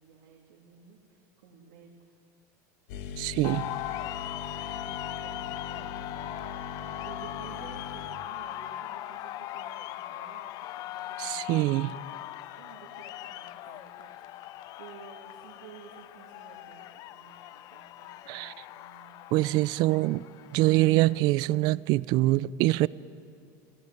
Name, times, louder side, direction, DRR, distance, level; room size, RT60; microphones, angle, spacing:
voice 1, 0.0-1.9 3.3-4.1 4.4-6.4 7.0-14.5 14.8-19.2, right 6 dB, 85° right, -2 dB, 3.0 m, -53 dB
sound 1, 2.9-8.1, left 5 dB, 70° left, 1.8 m, -41 dB
voice 2, 3.2-3.7 11.2-11.9 18.3-18.5 19.3-20.2 20.5-22.9, right 18 dB, 50° right, 20 dB, 0.5 m, -24 dB
sound 2, 3.4-21.2, left 14 dB, 45° left, 0.5 m, -40 dB
27.0 x 15.0 x 9.2 m, 2.4 s
supercardioid pair, 140°, 9 cm